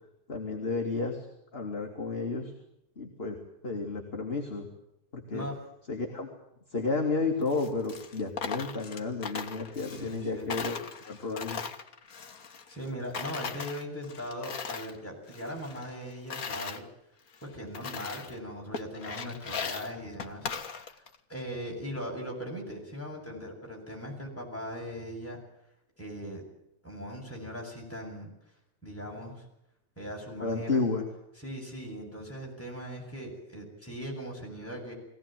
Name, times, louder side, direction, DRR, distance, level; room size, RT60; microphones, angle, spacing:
voice 1, 0.3-1.3 1.5-2.5 3.0-3.4 3.6-4.7 5.1-5.5 5.9-6.3 6.7-10.8 11.0-11.6 30.4-31.1, left 3 dB, 20° left, 2 dB, 2.5 m, -32 dB
Coin (dropping), 7.4-10.2 10.5-12.9 13.1-15.0 15.3-16.8 17.3-17.4 17.7-18.4 18.7-21.2, left 6 dB, 40° left, 1.3 m, -38 dB
voice 2, 9.9-10.5 12.7-16.8 17.4-20.5 21.3-25.4 26.0-26.4 26.8-28.3 28.8-29.4 30.0-30.8 31.4-34.9, equal, 5° left, -1 dB, 7.6 m, -39 dB
22.5 x 18.0 x 9.2 m, 0.81 s
omnidirectional pair, 3.4 m